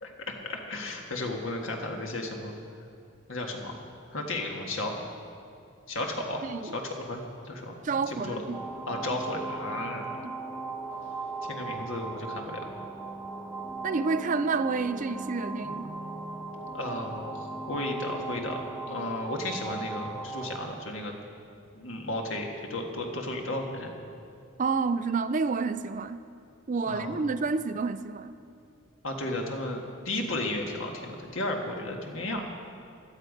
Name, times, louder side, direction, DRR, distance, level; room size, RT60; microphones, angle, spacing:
voice 1, 0.0-2.5 3.3-3.8 4.1-5.0 5.9-6.4 6.7-7.8 8.1-8.4 8.9-10.1 11.5-12.6 16.7-18.6 18.9-21.1 21.7-23.9 26.9-27.2 29.0-29.8 30.1-32.5, left 2 dB, 65° left, 2 dB, 1.7 m, -34 dB
voice 2, 6.4-6.7 7.8-8.6 10.2-10.3 13.8-15.9 24.6-26.2 26.7-28.3, right 4 dB, 35° right, 12 dB, 0.4 m, -29 dB
sound 1, 8.5-20.6, right 3 dB, ahead, 1.1 m, -38 dB
16.5 x 12.0 x 5.2 m, 2.5 s
head